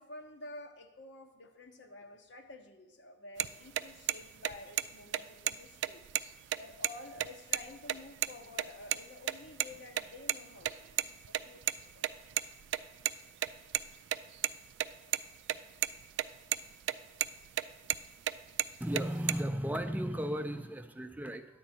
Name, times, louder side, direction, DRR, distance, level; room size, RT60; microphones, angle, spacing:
voice 1, 0.0-6.0 6.5-11.0 11.2-12.3, left 2 dB, 85° left, 5 dB, 1.0 m, -50 dB
sound 1, 3.4-3.5 3.8-3.9 4.1-4.2 4.4-4.8 5.1-5.2 5.5-5.6 5.8-6.9 7.2-7.3 7.5-7.6 7.9-8.3 8.6-9.0 9.3-10.3 10.6-13.1 13.4-15.2 15.5-15.6 15.8-16.2 16.5-16.9 17.2-18.3 18.6-19.3, right 12 dB, 90° right, 0.3 m, -31 dB
voice 2, 18.8-21.4, equal, 10° right, 8 dB, 0.4 m, -35 dB
10.0 x 8.1 x 4.3 m, 1.0 s
head